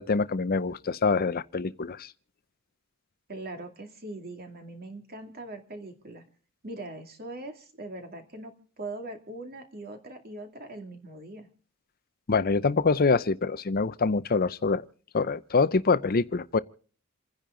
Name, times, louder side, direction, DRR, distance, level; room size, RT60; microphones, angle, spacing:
voice 1, 0.0-2.1 12.3-14.8 15.1-16.6, left 4 dB, 45° left, 0.6 m, -25 dB
voice 2, 3.3-6.2 6.6-11.5, right 2 dB, 45° right, 2.5 m, -41 dB
28.5 x 10.5 x 3.8 m
head